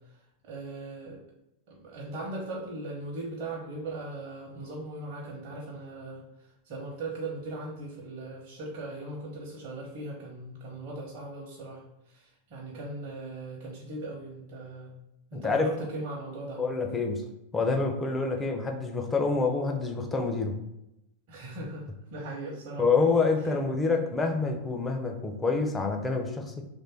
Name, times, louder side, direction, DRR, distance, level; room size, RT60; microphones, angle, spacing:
voice 1, 0.1-1.2 1.7-14.9 15.3-16.6 21.3-22.8 23.4-23.6, right 2 dB, 45° right, -4 dB, 0.9 m, -39 dB
voice 2, 15.3-15.7 16.6-17.2 17.5-20.6 22.8-26.6, left 4 dB, 15° left, 3 dB, 0.6 m, -27 dB
3.2 x 2.6 x 4.4 m, 0.86 s
figure-of-eight pair, 90°, 0 cm